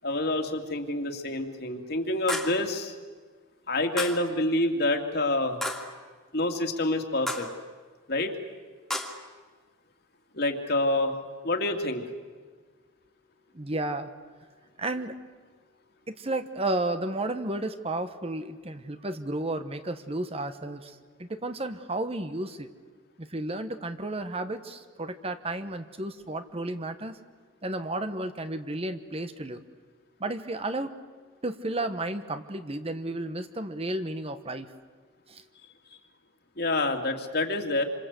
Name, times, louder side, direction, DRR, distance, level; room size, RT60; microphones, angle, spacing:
voice 1, 0.0-2.9 3.7-5.6 6.3-7.5 8.1-8.3 10.3-11.2 11.4-12.0 36.6-37.8, left 2 dB, 55° left, 4 dB, 2.7 m, -27 dB
sound 1, 2.3-2.7 4.0-4.3 5.6-6.0 7.3-7.6 8.9-9.3, left 1 dB, ahead, 2.4 m, -33 dB
voice 2, 13.5-14.1 14.8-15.2 16.1-22.7 23.2-27.2 27.6-29.6 30.2-30.9 31.4-34.7 35.3-35.4, right 2 dB, 30° right, 9 dB, 1.2 m, -32 dB
28.0 x 26.0 x 8.2 m, 1.4 s
head